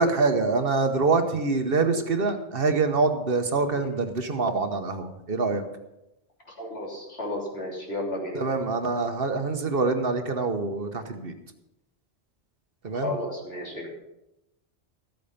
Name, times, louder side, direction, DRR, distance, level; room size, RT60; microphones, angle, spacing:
voice 1, 0.0-5.6 8.3-11.3 12.8-13.1, right 3 dB, 55° right, 7 dB, 1.2 m, -25 dB
voice 2, 6.4-8.5 12.9-13.9, left 1 dB, 65° left, -3 dB, 3.6 m, -33 dB
13.5 x 8.5 x 5.7 m, 0.91 s
omnidirectional pair, 1.1 m